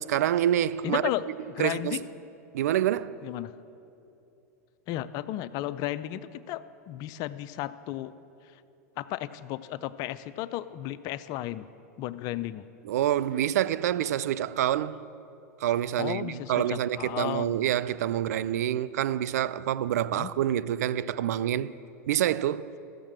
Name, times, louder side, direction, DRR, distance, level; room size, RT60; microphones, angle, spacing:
voice 1, 0.1-1.0 1.6-2.0 2.5-3.2 12.8-15.1 15.6-21.7 22.1-22.7, right 11 dB, 75° right, 0.4 m, -27 dB
voice 2, 0.8-1.2 1.6-2.0 3.2-3.5 4.9-8.1 9.0-11.7 12.0-12.6 16.0-17.5 20.1-20.3, left 14 dB, 45° left, 0.4 m, -34 dB
14.0 x 7.3 x 6.0 m
hypercardioid pair, 105°, 9 cm